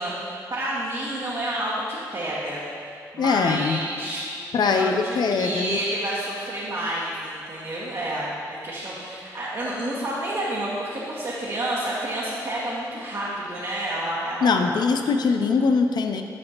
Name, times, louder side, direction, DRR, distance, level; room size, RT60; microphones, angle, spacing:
voice 1, 0.0-4.2 4.6-14.8, right 1 dB, 50° right, -8 dB, 1.2 m, -29 dB
voice 2, 3.2-3.8 4.5-5.8 14.4-16.2, left 5 dB, 65° left, 6 dB, 0.4 m, -22 dB
8.3 x 4.9 x 2.9 m, 2.5 s
supercardioid pair, 50°, 8 cm